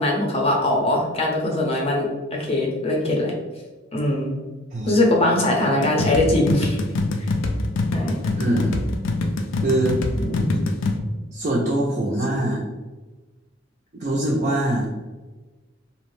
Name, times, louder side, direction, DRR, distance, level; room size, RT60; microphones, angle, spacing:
voice 1, 0.0-3.3 3.9-4.3 4.9-6.8 7.9-8.2 10.2-10.6, left 1 dB, 30° left, -1 dB, 0.6 m, -21 dB
sound 1, 5.8-11.0, left 2 dB, 85° left, 0.3 m, -24 dB
voice 2, 8.4-8.7 9.6-10.0 11.3-12.6 13.9-14.9, right 1 dB, 40° right, -5 dB, 0.4 m, -23 dB
2.6 x 2.0 x 3.0 m, 1.2 s
head